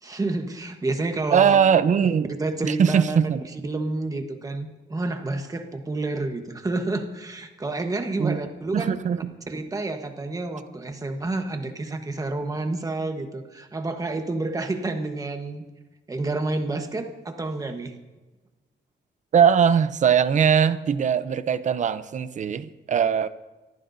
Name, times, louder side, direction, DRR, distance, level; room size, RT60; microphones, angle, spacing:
voice 1, 0.0-1.6 2.0-2.1 2.4-3.2 3.6-9.0 9.5-15.6 16.1-18.0, right 2 dB, 20° right, 5 dB, 1.2 m, -29 dB
voice 2, 1.3-2.3 2.6-3.4 8.2-8.4 8.7-9.2 19.3-23.3, right 7 dB, 40° right, 13 dB, 0.6 m, -20 dB
24.5 x 14.5 x 2.7 m, 1.2 s
wide cardioid pair, 170°, 20 cm